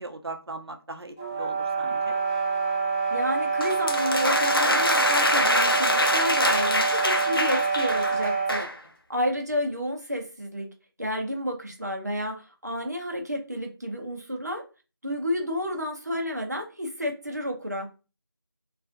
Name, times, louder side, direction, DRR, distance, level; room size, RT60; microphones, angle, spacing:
voice 1, 0.0-2.2, right 3 dB, 85° right, 5 dB, 0.6 m, -39 dB
sound 1, 1.2-8.7, right 4 dB, 30° left, 1.1 m, -26 dB
voice 2, 3.1-8.7 9.1-10.7 11.0-14.6 15.0-17.9, equal, 45° right, 2 dB, 0.6 m, -30 dB
sound 2, 3.6-8.8, left 1 dB, 65° left, 0.6 m, -25 dB
2.5 x 2.3 x 2.4 m, 0.32 s
figure-of-eight pair, 180°, 13 cm